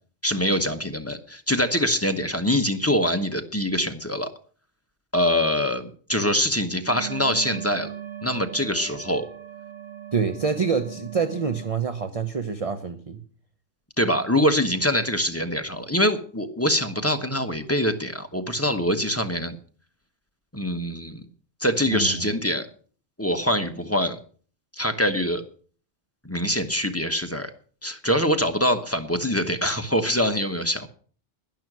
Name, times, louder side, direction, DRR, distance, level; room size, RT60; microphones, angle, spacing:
voice 1, 0.2-4.3 5.1-7.9 8.2-9.3 14.0-19.6 20.5-21.2 21.6-22.7 23.2-24.2 24.8-25.4 26.2-27.5 27.8-30.9, equal, 15° left, 7 dB, 1.0 m, -24 dB
sound 1, 6.9-11.7, right 10 dB, 60° right, 1.6 m, -38 dB
voice 2, 10.1-13.2 21.9-22.3, right 5 dB, 35° right, 9 dB, 0.9 m, -26 dB
12.0 x 11.0 x 6.1 m, 0.43 s
omnidirectional pair, 1.2 m